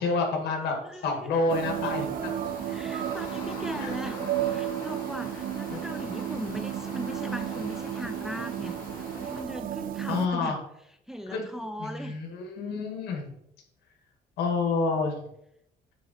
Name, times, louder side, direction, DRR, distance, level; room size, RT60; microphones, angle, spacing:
voice 1, 0.0-0.8 1.0-2.3 3.8-3.9 5.7-5.8 10.1-10.6 11.3-11.5 11.8-13.3 14.4-15.2, left 3 dB, 75° left, 2 dB, 2.0 m, -28 dB
voice 2, 0.8-1.3 2.7-10.6 11.1-12.2, equal, 5° right, 8 dB, 0.5 m, -39 dB
sound 1, 1.3-9.4, left 2 dB, 55° left, 3.1 m, -43 dB
sound 2, 1.5-10.3, right 11 dB, 55° right, 0.6 m, -33 dB
9.2 x 3.7 x 4.3 m, 0.77 s
cardioid pair, 110°, 17 cm